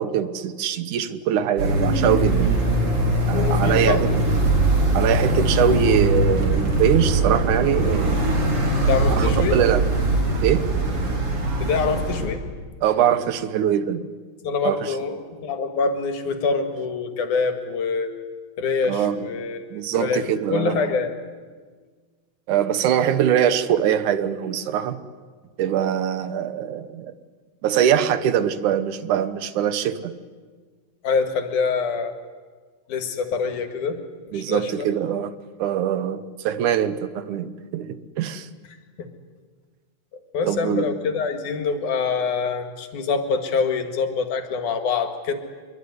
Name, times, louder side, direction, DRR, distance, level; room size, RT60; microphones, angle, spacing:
voice 1, 0.0-2.5 3.3-4.1 4.9-8.2 9.2-9.8 10.4-10.7 12.8-14.1 14.6-14.9 18.9-19.2 19.7-20.9 22.5-25.0 25.6-27.1 27.6-30.2 34.3-35.3 35.6-38.5 40.5-40.9, right 9 dB, 85° right, 2.6 m, -22 dB
sound 1, 1.6-12.3, right 1 dB, 45° right, 4.7 m, -21 dB
voice 2, 3.3-4.2 8.9-9.6 11.6-12.4 14.4-18.1 18.6-19.7 19.9-21.2 31.0-32.2 32.9-34.0 34.3-34.9 40.3-45.3, left 5 dB, 85° left, 3.5 m, -25 dB
25.0 x 23.0 x 9.7 m
omnidirectional pair, 3.4 m